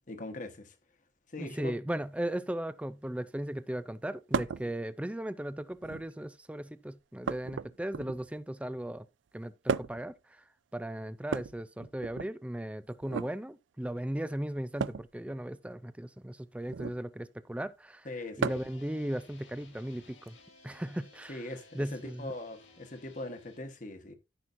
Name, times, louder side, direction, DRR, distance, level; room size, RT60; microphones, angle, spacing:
voice 1, 0.1-0.5 1.3-1.7 18.0-18.6 21.3-24.1, left 2 dB, 40° left, 1.3 m, -41 dB
voice 2, 1.4-9.1 9.3-10.1 10.7-20.4 20.6-22.3, right 1 dB, 5° right, 0.4 m, -37 dB
sound 1, 4.3-4.7 5.7-6.2 7.3-8.4 9.7-10.1 11.2-12.3 13.0-13.3 14.8-15.1 16.7-17.0 18.4-18.8 20.3-20.4 21.6-21.7, right 6 dB, 75° right, 0.4 m, -34 dB
sound 2, 18.5-23.6, left 3 dB, 90° left, 2.6 m, -58 dB
14.0 x 6.2 x 2.6 m
head